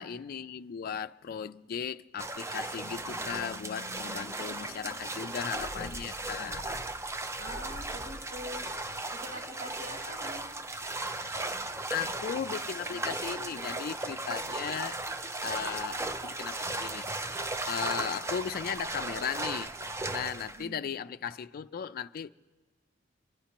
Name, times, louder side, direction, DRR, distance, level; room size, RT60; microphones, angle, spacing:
voice 1, 0.0-6.7 11.9-15.0 15.4-17.0 17.7-19.7 20.1-22.3, left 7 dB, 50° left, 0.3 m, -36 dB
sound 1, 2.2-20.6, right 2 dB, 15° right, 0.4 m, -36 dB
sound 2, 5.5-10.1 10.4-10.5, equal, 25° left, 0.8 m, -48 dB
voice 2, 7.4-8.7 9.1-10.5 20.4-20.8, equal, 90° right, 2.9 m, -44 dB
29.0 x 11.5 x 2.9 m
head